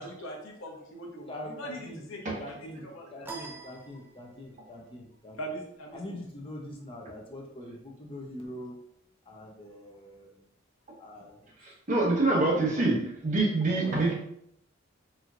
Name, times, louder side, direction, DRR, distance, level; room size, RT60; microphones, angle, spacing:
voice 1, 0.0-3.6 5.4-6.2, right 1 dB, 75° left, 0 dB, 0.8 m, -42 dB
voice 2, 1.3-2.1 2.4-5.4 5.9-8.8 9.3-10.4 11.0-11.7 12.3-12.9 13.7-14.1, left 1 dB, 25° left, 0 dB, 0.7 m, -43 dB
sound 1, 3.2-4.6, right 4 dB, 10° right, 0.4 m, -44 dB
voice 3, 11.6-14.1, right 2 dB, 40° right, -4 dB, 1.0 m, -26 dB
4.4 x 2.7 x 2.5 m, 0.72 s
head